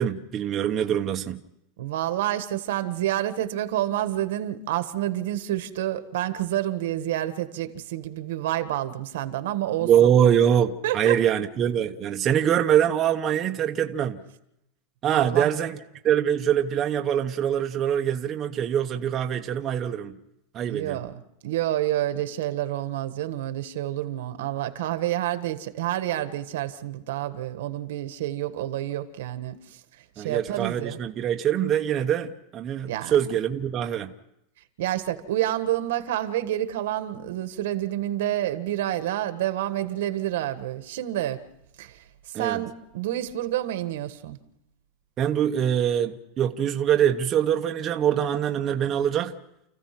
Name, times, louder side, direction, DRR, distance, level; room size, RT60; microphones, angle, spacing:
voice 1, 0.0-1.4 9.8-14.2 15.0-15.8 16.0-20.2 20.5-21.0 30.2-34.1 42.3-42.6 45.2-49.4, right 9 dB, 25° right, 0.8 m, -24 dB
voice 2, 1.8-10.2 10.8-11.2 15.1-15.5 20.7-21.1 21.4-31.0 32.8-33.2 34.8-41.4 41.8-44.4, right 13 dB, 75° right, 1.5 m, -29 dB
29.0 x 15.0 x 6.0 m
supercardioid pair, 170°, 0 cm